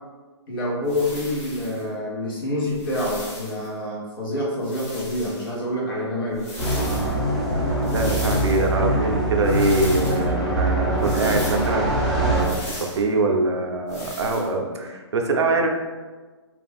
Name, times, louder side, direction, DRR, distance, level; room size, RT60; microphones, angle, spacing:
voice 1, 0.5-6.5, left 1 dB, 50° left, -5 dB, 1.1 m, -27 dB
sound 1, 0.9-1.8 2.7-3.7 4.6-5.5 6.3-7.1 7.8-8.7 9.4-10.2 11.0-11.7 12.4-13.0 13.9-14.5, left 1 dB, 15° left, 0.8 m, -37 dB
sound 2, 6.6-12.4, right 1 dB, ahead, 0.4 m, -23 dB
voice 2, 7.5-15.7, right 3 dB, 70° right, 2 dB, 0.5 m, -24 dB
2.5 x 2.3 x 3.4 m, 1.3 s
hypercardioid pair, 145°, 15 cm